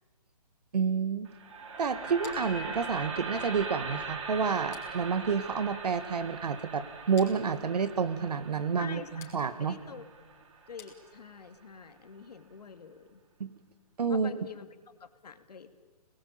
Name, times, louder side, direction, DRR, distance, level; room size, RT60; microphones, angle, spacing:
voice 1, 0.7-1.3 1.8-9.8 13.4-13.6 14.0-14.3, right 6 dB, 75° right, 12 dB, 2.0 m, -29 dB
sound 1, 1.3-11.4, right 4 dB, 50° right, 3.7 m, -41 dB
sound 2, 2.2-11.6, left 7 dB, 15° left, 4.4 m, -57 dB
voice 2, 8.8-10.0 10.7-13.2 14.1-14.7 15.0-15.7, left 6 dB, 75° left, 8 dB, 2.7 m, -46 dB
27.0 x 20.0 x 8.9 m, 1.3 s
hypercardioid pair, 155°, 20 cm